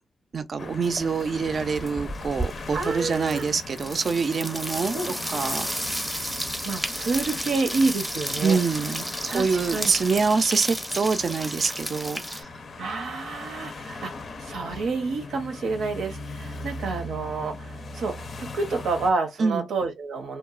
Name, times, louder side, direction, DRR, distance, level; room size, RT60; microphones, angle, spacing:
voice 1, 0.3-5.7 8.4-12.5 19.4-19.7, right 5 dB, 50° right, 0.4 m, -26 dB
sound 1, 0.6-19.1, left 3 dB, 55° left, 0.5 m, -39 dB
sound 2, 0.8-1.2 1.5-12.4, right 1 dB, 5° right, 0.6 m, -33 dB
voice 2, 2.7-3.5 4.9-5.1 6.6-8.6 9.3-9.9 12.8-14.1 14.4-20.4, right 3 dB, 85° right, 0.7 m, -29 dB
2.8 x 2.3 x 2.4 m
cardioid pair, 90°, 0 cm